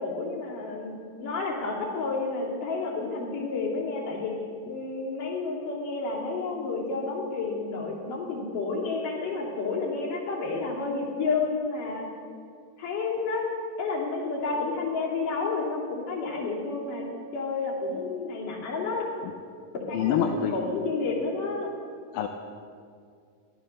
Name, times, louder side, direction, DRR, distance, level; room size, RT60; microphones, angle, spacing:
voice 1, 0.0-4.3 4.6-12.0 12.8-13.5 13.8-19.1 19.9-21.7, left 4 dB, 70° left, -5 dB, 4.4 m, -30 dB
voice 2, 19.9-20.6 22.1-22.3, left 9 dB, 90° left, 3 dB, 2.5 m, -25 dB
14.5 x 11.0 x 6.5 m, 2.2 s
omnidirectional pair, 4.0 m